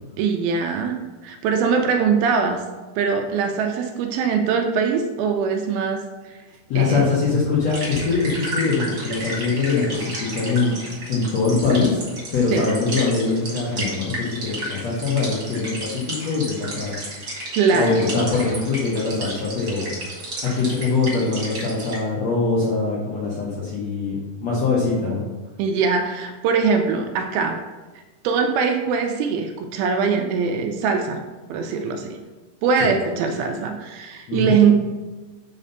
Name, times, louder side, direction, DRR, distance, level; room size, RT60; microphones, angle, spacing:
voice 1, 0.2-1.0 1.2-2.6 3.0-6.3 6.8-7.1 12.5-12.7 17.6-18.0 25.6-27.6 28.2-31.2 31.5-32.2 32.6-34.8, right 5 dB, 80° right, 4 dB, 2.3 m, -22 dB
voice 2, 6.7-10.8 11.1-12.0 12.3-16.9 17.7-19.9 20.4-25.2 32.8-32.9 34.3-34.5, left 4 dB, 80° left, -6 dB, 1.5 m, -22 dB
sound 1, 7.7-22.0, right 1 dB, 40° right, 2.1 m, -33 dB
5.4 x 4.9 x 5.5 m, 1.2 s
omnidirectional pair, 4.7 m